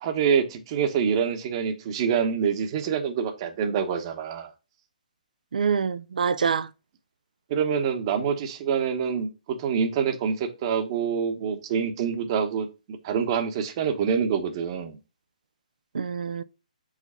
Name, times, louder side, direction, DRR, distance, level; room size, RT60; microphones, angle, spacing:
voice 1, 0.0-4.5 7.5-9.3 9.6-15.0, right 7 dB, 40° right, 1.0 m, -26 dB
voice 2, 5.5-6.7 15.9-16.4, right 6 dB, 70° right, 0.5 m, -25 dB
5.0 x 3.9 x 5.4 m
hypercardioid pair, 145°, 4 cm